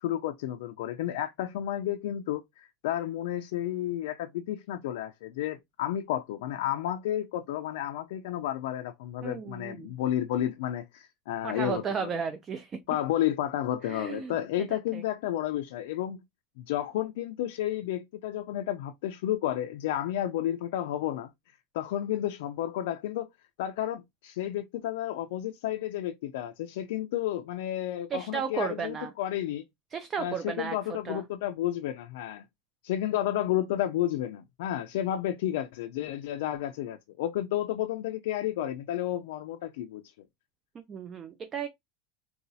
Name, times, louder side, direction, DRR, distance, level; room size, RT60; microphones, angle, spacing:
voice 1, 0.0-12.1 12.9-16.2 16.6-21.3 21.7-23.3 23.6-29.6 30.2-32.4 32.8-40.1, left 12 dB, 70° left, 0.4 m, -31 dB
voice 2, 9.2-9.9 11.4-12.8 13.8-14.4 14.7-15.0 28.1-29.1 29.9-31.2 40.7-41.7, right 6 dB, 20° right, 0.3 m, -34 dB
4.0 x 2.3 x 2.6 m
supercardioid pair, 170°, 0 cm